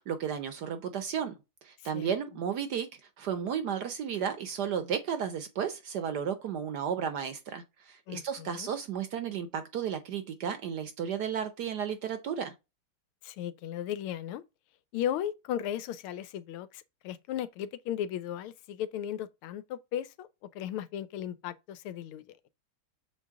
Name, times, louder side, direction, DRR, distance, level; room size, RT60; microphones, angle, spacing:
voice 1, 0.0-1.4 1.6-2.9 3.2-12.5, right 8 dB, 65° right, 1.1 m, -33 dB
voice 2, 8.1-8.7 13.2-14.4 14.9-20.3 20.5-22.5, left 10 dB, 85° left, 1.5 m, -36 dB
6.6 x 4.0 x 3.6 m
omnidirectional pair, 2.3 m